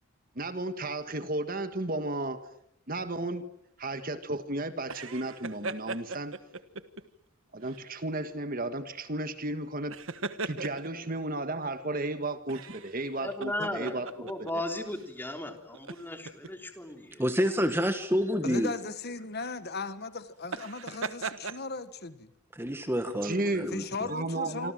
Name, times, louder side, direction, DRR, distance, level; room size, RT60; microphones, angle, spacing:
voice 1, 0.4-2.4 2.9-3.5 3.8-6.4 7.5-10.0 10.4-14.6 23.1-23.7 24.1-24.7, right 2 dB, 40° right, 10 dB, 1.7 m, -34 dB
sound 1, 4.8-7.0 7.6-7.8 9.7-11.1 12.5-14.5 14.9-15.0 15.7-16.5 17.6-17.8 20.4-21.6, right 4 dB, 65° right, 1.4 m, -38 dB
voice 2, 13.2-17.2, left 1 dB, 10° left, 5 dB, 3.3 m, -36 dB
voice 3, 17.2-18.7 22.5-24.1, equal, 10° right, 7 dB, 1.6 m, -28 dB
voice 4, 18.4-22.3 23.7-24.7, left 3 dB, 45° left, 12 dB, 1.5 m, -37 dB
27.0 x 26.5 x 7.7 m, 0.77 s
head